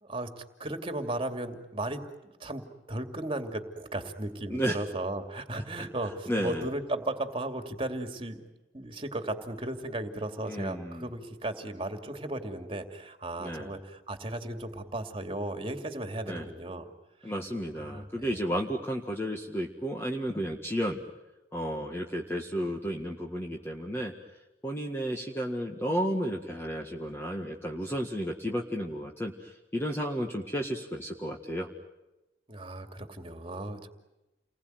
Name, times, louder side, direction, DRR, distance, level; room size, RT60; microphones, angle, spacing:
voice 1, 0.0-8.4 8.7-16.9 17.2-17.3 17.8-18.5 32.5-33.9, right 1 dB, 30° right, 7 dB, 2.6 m, -36 dB
voice 2, 6.3-6.7 10.5-11.1 13.4-13.7 16.2-16.5 17.2-21.0 21.5-24.1 24.6-31.7, equal, 15° left, 1 dB, 1.8 m, -32 dB
30.0 x 21.0 x 9.4 m, 1.0 s
head